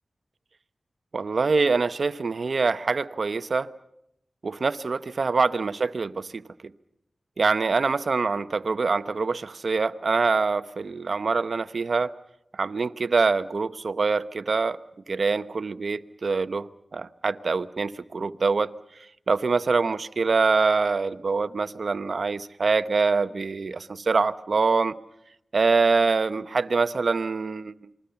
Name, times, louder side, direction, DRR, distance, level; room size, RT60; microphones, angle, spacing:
voice 1, 1.1-3.7 4.4-6.4 7.4-12.1 12.5-14.8 15.1-16.7 16.9-18.7 19.3-24.9 25.5-27.7, right 4 dB, 70° right, 0.9 m, -24 dB
27.5 x 21.5 x 6.9 m
cardioid pair, 50°, 0 cm